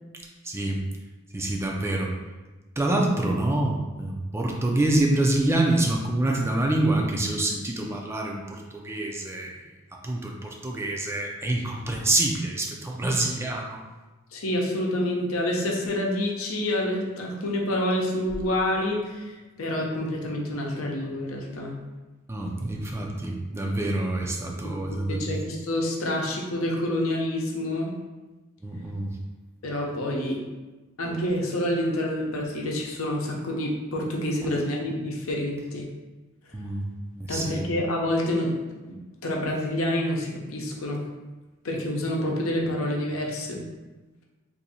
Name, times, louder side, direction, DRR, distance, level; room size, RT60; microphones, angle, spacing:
voice 1, 0.4-0.8 1.3-2.1 2.8-9.5 10.0-13.8 22.3-25.3 28.6-29.2 36.5-36.9 37.1-37.7, right 2 dB, 15° right, 0 dB, 0.3 m, -26 dB
voice 2, 14.3-21.8 24.6-24.7 25.1-27.9 29.6-30.4 31.0-35.9 37.3-38.5 39.2-41.0 41.6-43.6, left 1 dB, 90° left, -1 dB, 0.7 m, -28 dB
2.7 x 2.6 x 4.1 m, 1.2 s
head